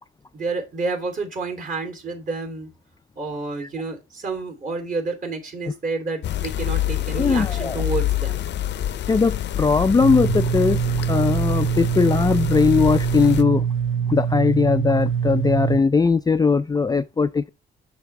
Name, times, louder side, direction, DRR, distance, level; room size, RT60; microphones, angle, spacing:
voice 1, 0.3-2.7 3.2-8.4, right 3 dB, 40° right, 3.1 m, -29 dB
sound 1, 6.2-13.4, left 12 dB, 60° left, 0.7 m, -27 dB
voice 2, 7.1-7.8 9.1-13.6 14.1-17.5, left 4 dB, 20° left, 0.4 m, -19 dB
sound 2, 10.0-15.8, right 8 dB, 80° right, 1.3 m, -24 dB
7.1 x 6.1 x 3.3 m
cardioid pair, 90°, 20 cm